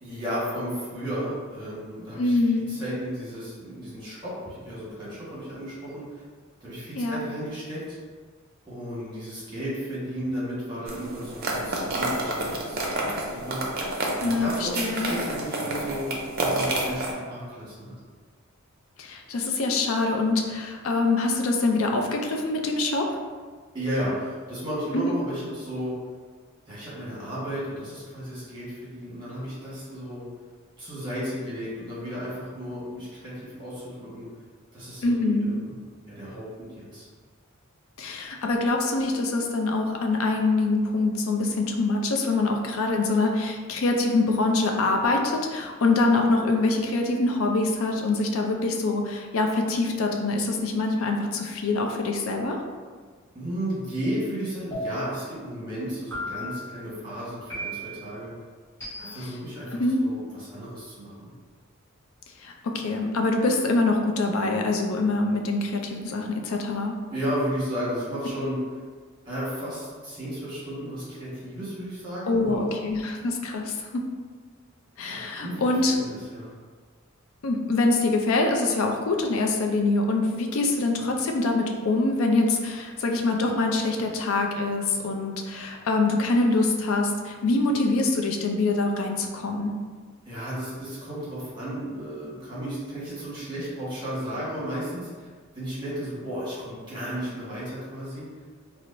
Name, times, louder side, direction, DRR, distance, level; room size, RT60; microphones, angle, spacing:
voice 1, 0.0-6.2 6.6-8.0 8.6-13.6 14.2-17.9 23.7-25.9 26.7-30.3 30.8-34.3 34.7-35.8 36.1-37.1 53.3-58.3 59.0-61.3 67.1-68.6 69.2-72.8 75.1-76.5 90.2-95.3 95.5-98.2, equal, 20° right, -8 dB, 1.2 m, -34 dB
voice 2, 2.2-2.6 7.0-7.2 14.2-15.2 19.0-23.1 24.9-25.1 35.0-35.5 38.0-52.6 59.7-60.0 62.4-66.9 72.3-74.0 75.0-75.9 77.4-89.7, left 2 dB, 70° left, 2 dB, 0.4 m, -24 dB
sound 1, 10.9-17.1, right 2 dB, 45° right, 0.5 m, -29 dB
sound 2, 54.7-55.3 56.1-56.7 57.5-58.1 58.8-59.4, equal, 15° left, 1.3 m, -35 dB
4.5 x 2.0 x 2.5 m, 1.5 s
head